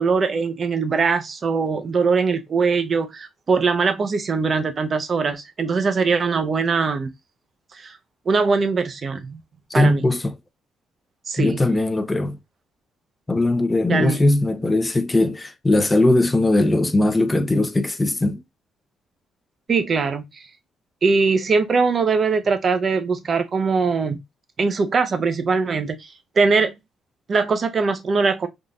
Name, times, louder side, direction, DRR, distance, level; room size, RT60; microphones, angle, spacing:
voice 1, 0.0-7.1 7.7-7.9 8.3-9.4 9.7-10.0 11.3-11.6 13.9-14.2 19.7-20.2 21.0-24.2 24.6-26.7 27.3-28.5, right 4 dB, 45° right, 0.7 m, -21 dB
voice 2, 9.7-10.3 11.4-12.4 13.3-18.4, left 2 dB, 20° left, 0.5 m, -19 dB
3.6 x 2.6 x 2.3 m
cardioid pair, 90°, 0 cm